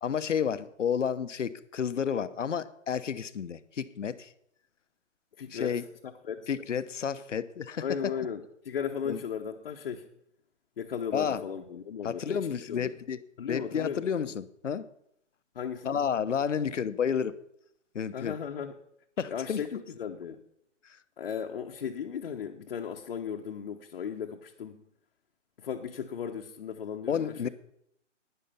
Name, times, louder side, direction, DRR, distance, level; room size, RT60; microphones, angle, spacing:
voice 1, 0.0-4.3 5.5-5.8 6.5-8.1 9.0-9.2 11.1-11.4 12.0-13.2 13.5-14.9 15.8-17.4 17.9-18.3 19.2-19.6 20.8-21.0 27.1-27.5, left 7 dB, 75° left, 1.0 m, -31 dB
voice 2, 5.4-5.7 6.2-6.5 7.8-10.1 10.8-12.9 13.4-14.0 15.5-16.0 18.1-18.8 19.3-20.4 21.2-24.8 25.6-27.5, left 7 dB, 50° left, 1.1 m, -36 dB
12.5 x 10.0 x 5.7 m
hypercardioid pair, 155°, 37 cm